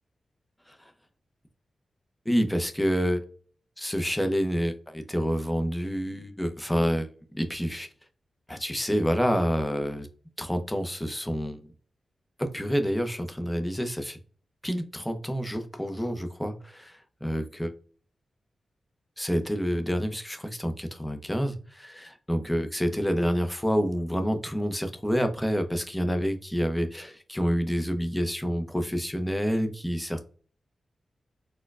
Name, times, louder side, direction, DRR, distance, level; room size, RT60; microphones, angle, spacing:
voice 1, 2.3-3.3 3.8-7.1 7.3-7.9 8.5-10.1 10.4-11.6 12.4-14.2 14.6-17.7 19.2-30.2, equal, 10° left, 6 dB, 0.6 m, -28 dB
4.2 x 2.2 x 2.3 m, 0.43 s
cardioid pair, 60°, 0 cm